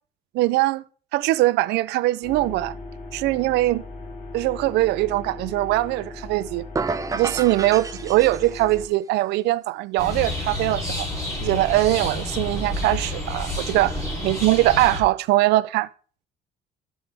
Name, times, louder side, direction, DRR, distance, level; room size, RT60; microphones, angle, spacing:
voice 1, 0.3-0.8 1.1-2.8 3.1-3.8 4.3-6.7 7.1-11.1 11.4-15.9, right 17 dB, 85° right, 0.5 m, -21 dB
sound 1, 2.2-8.9, left 2 dB, 50° left, 2.1 m, -38 dB
sound 2, 6.7-8.8, right 4 dB, 20° right, 0.6 m, -30 dB
sound 3, 10.0-15.0, left 1 dB, 20° left, 3.2 m, -29 dB
12.0 x 5.4 x 3.4 m
cardioid pair, 110°, 17 cm